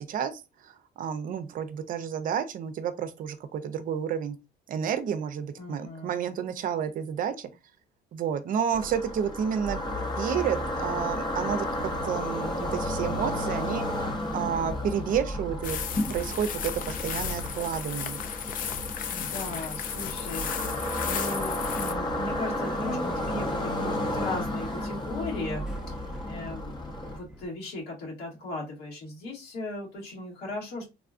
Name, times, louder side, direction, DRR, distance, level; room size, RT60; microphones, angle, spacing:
voice 1, 0.0-4.4 4.7-7.5 8.1-9.8 10.2-13.9 14.3-15.8 16.1-18.2, right 8 dB, 55° right, 0.5 m, -30 dB
voice 2, 5.6-6.1 19.1-26.7 27.0-30.9, left 2 dB, 75° left, 1.9 m, -37 dB
sound 1, 8.7-27.2, left 1 dB, 25° left, 0.8 m, -32 dB
sound 2, 15.6-21.9, left 8 dB, 55° left, 0.5 m, -35 dB
Subway metro underground, 19.3-27.5, right 1 dB, 5° right, 0.7 m, -47 dB
3.5 x 2.3 x 2.5 m
cardioid pair, 110°, 17 cm